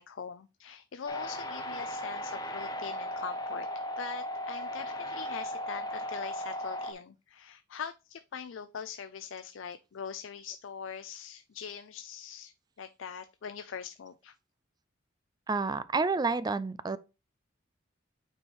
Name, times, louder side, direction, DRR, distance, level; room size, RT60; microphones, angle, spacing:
voice 1, 0.0-3.7 4.0-12.5 12.8-14.3, left 6 dB, 70° left, 0.4 m, -42 dB
sound 1, 1.1-6.9, equal, 20° left, 0.8 m, -37 dB
voice 2, 15.5-17.0, right 4 dB, 20° right, 0.3 m, -29 dB
8.9 x 4.5 x 3.1 m
head